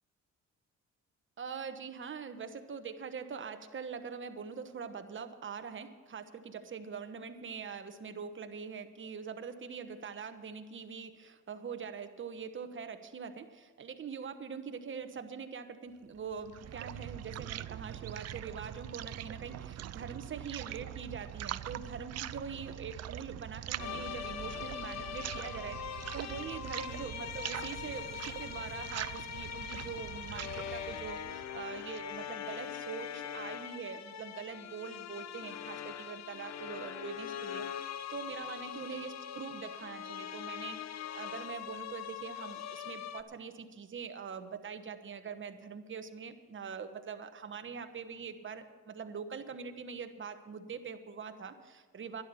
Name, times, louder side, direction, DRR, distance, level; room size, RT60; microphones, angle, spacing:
voice 1, 1.4-37.6 38.1-52.2, right 6 dB, 40° right, 8 dB, 1.2 m, -43 dB
sound 1, 16.1-32.2, right 13 dB, 55° right, 0.5 m, -43 dB
sound 2, 23.8-43.2, left 9 dB, 60° left, 0.8 m, -42 dB
12.0 x 10.5 x 7.0 m, 1.5 s
cardioid pair, 90°, 30 cm